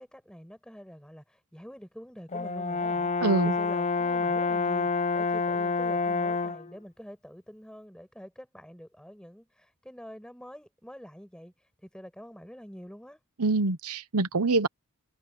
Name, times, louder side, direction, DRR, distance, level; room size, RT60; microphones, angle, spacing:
voice 1, 0.0-13.2, equal, 5° left, 7.0 m, -46 dB
Brass instrument, 2.3-6.7, left 4 dB, 30° left, 0.6 m, -28 dB
voice 2, 3.2-3.5 13.4-14.7, right 3 dB, 85° right, 1.0 m, -25 dB
head